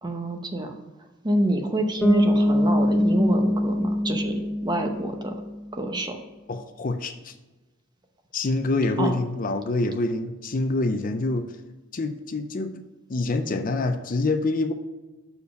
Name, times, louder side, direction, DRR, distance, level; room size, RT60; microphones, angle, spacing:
voice 1, 0.0-0.7 1.2-5.3 5.7-6.2 9.0-9.1, right 1 dB, 20° right, 4 dB, 0.9 m, -26 dB
Bass guitar, 2.0-5.7, left 1 dB, 5° left, 0.8 m, -23 dB
voice 2, 6.5-7.3 8.3-11.6 11.9-12.8 13.1-14.7, left 2 dB, 45° left, 8 dB, 0.5 m, -26 dB
6.8 x 4.6 x 6.8 m, 1.1 s
head